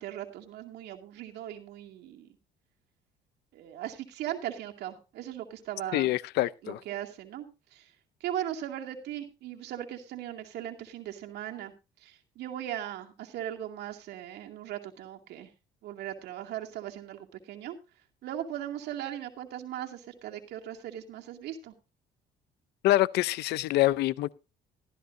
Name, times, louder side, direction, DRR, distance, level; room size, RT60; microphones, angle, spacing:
voice 1, 0.0-2.3 3.5-6.1 6.6-7.5 7.7-7.9 8.2-11.7 12.0-15.5 15.8-17.8 18.2-21.7, right 11 dB, 80° right, 2.4 m, -38 dB
voice 2, 5.9-6.8 22.8-24.3, left 16 dB, 80° left, 0.6 m, -25 dB
15.5 x 13.5 x 2.6 m
cardioid pair, 110°, 17 cm